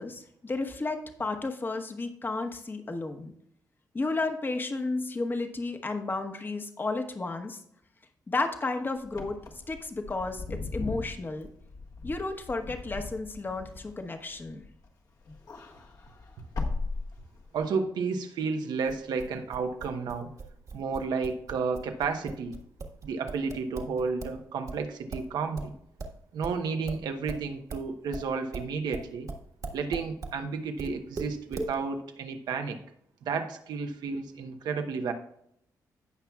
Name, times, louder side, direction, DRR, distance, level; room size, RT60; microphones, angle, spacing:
voice 1, 0.0-3.3 3.9-7.6 8.3-9.4 9.7-11.5 12.0-14.6, left 3 dB, 30° left, 5 dB, 1.1 m, -32 dB
Wind / Car, 9.0-14.9 15.2-17.6, left 3 dB, 60° left, 1.5 m, -38 dB
voice 2, 17.5-20.3 20.7-22.6 23.0-25.7 26.3-29.3 29.7-32.8 33.2-35.1, right 5 dB, 85° right, 6 dB, 1.0 m, -32 dB
sound 1, 18.8-24.4 24.7-30.4 30.8-31.7, right 3 dB, 55° right, 1.6 m, -39 dB
16.5 x 5.8 x 2.4 m, 0.73 s
cardioid pair, 95°, 7 cm